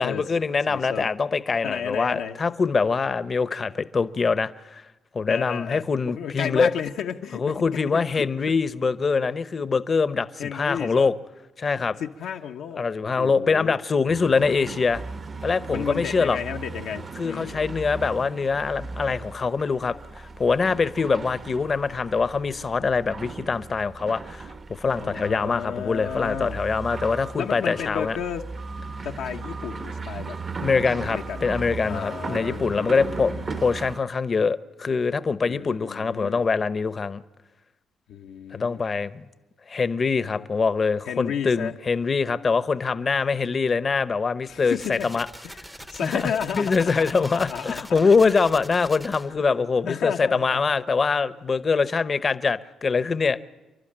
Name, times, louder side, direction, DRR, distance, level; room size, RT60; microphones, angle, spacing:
voice 1, 0.0-4.8 5.1-6.7 7.4-11.1 11.6-12.0 12.8-15.0 15.4-16.4 17.2-28.2 30.6-33.3 33.6-37.2 38.5-39.3 39.7-45.3 46.0-53.4, left 4 dB, 35° left, 0.9 m, -24 dB
voice 2, 0.7-1.1 1.6-2.4 5.3-8.0 10.4-11.1 12.0-13.7 15.7-17.6 24.9-26.6 27.4-28.5 29.0-30.4 31.1-31.5 31.8-33.6 35.5-36.4 38.1-38.8 40.4-40.5 41.0-41.7 44.5-45.1 45.4-48.3 49.8-50.6, left 8 dB, 80° left, 0.9 m, -33 dB
sound 1, 14.1-34.0, right 4 dB, 35° right, 0.9 m, -37 dB
sound 2, 44.5-49.5, right 1 dB, 10° right, 0.7 m, -43 dB
29.5 x 11.5 x 8.8 m
cardioid pair, 90°, 0 cm